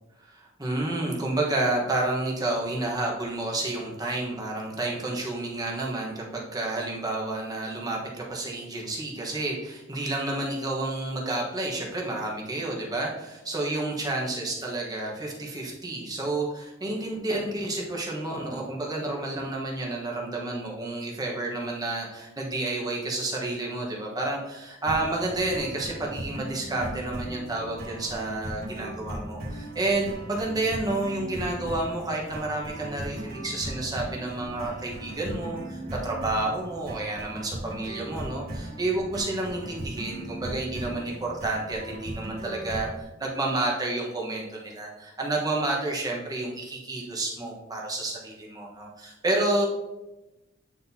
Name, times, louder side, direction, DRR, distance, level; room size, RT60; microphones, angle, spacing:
voice 1, 0.2-49.7, right 2 dB, 20° right, -2 dB, 1.2 m, -30 dB
sound 1, 24.9-43.0, right 1 dB, 50° right, 1.7 m, -38 dB
8.7 x 4.4 x 2.8 m, 1.0 s
head